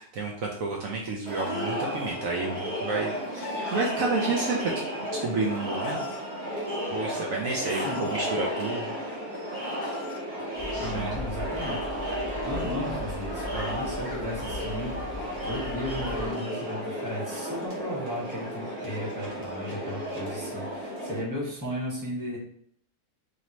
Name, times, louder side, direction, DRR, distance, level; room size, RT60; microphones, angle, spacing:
voice 1, 0.0-4.8 5.1-6.1 6.9-8.9 10.7-11.3, right 3 dB, 70° right, -1 dB, 1.0 m, -30 dB
Chicken rooster, 0.6-1.7 2.8-3.8 4.8-6.2 7.1-8.2 9.2-10.2 11.3-14.7, left 4 dB, 80° left, 1.1 m, -42 dB
Crowd, 1.3-21.2, equal, 85° right, 1.5 m, -33 dB
voice 2, 10.4-11.8 12.4-22.4, equal, 15° right, -5 dB, 1.4 m, -35 dB
sound 1, 10.5-16.3, left 1 dB, 30° right, 1.5 m, -38 dB
5.0 x 2.8 x 3.0 m, 0.64 s
omnidirectional pair, 1.6 m